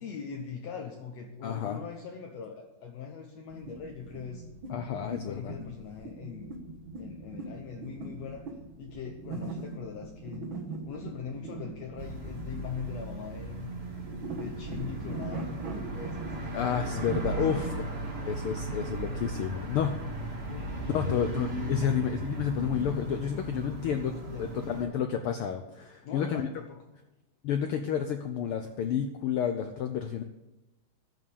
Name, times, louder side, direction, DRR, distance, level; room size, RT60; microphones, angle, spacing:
voice 1, 0.0-4.5 4.9-6.6 7.0-8.4 8.8-10.5 10.9-13.7 14.4-18.1 20.5-21.3 21.8-21.9 23.9-25.0 26.0-26.8, left 6 dB, 65° left, 2 dB, 2.1 m, -42 dB
voice 2, 1.4-1.8 4.7-5.6 16.5-17.7 18.2-20.3 20.9-26.5 27.4-30.2, left 8 dB, 90° left, 7 dB, 1.2 m, -31 dB
sound 1, 3.5-19.0, right 3 dB, 50° right, 1.9 m, -41 dB
sound 2, 12.0-24.9, right 1 dB, 25° right, 1.6 m, -36 dB
13.5 x 6.4 x 8.6 m, 1.0 s
omnidirectional pair, 3.4 m